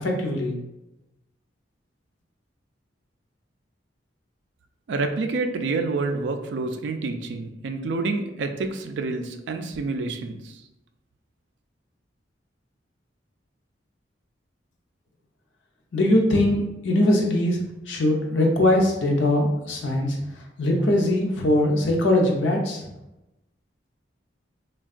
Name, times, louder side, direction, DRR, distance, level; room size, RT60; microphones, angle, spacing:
voice 1, 0.0-0.6 15.9-17.6 17.9-20.2 20.6-22.8, left 1 dB, 80° left, 0 dB, 0.6 m, -21 dB
voice 2, 4.9-10.6, right 3 dB, 65° right, 6 dB, 0.3 m, -28 dB
3.5 x 2.2 x 2.4 m, 0.94 s
head